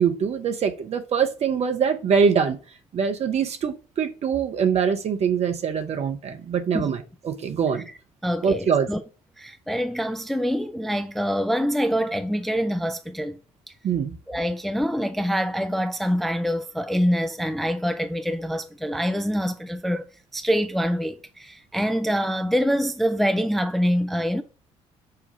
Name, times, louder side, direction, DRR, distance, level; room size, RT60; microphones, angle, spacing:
voice 1, 0.0-2.6 2.9-7.8 8.4-8.9 13.8-14.1, right 6 dB, 40° right, 0.8 m, -23 dB
voice 2, 8.2-9.0 9.4-13.4 14.3-20.0 20.3-24.4, equal, ahead, 0.4 m, -25 dB
5.7 x 2.3 x 4.0 m
figure-of-eight pair, 45°, 16 cm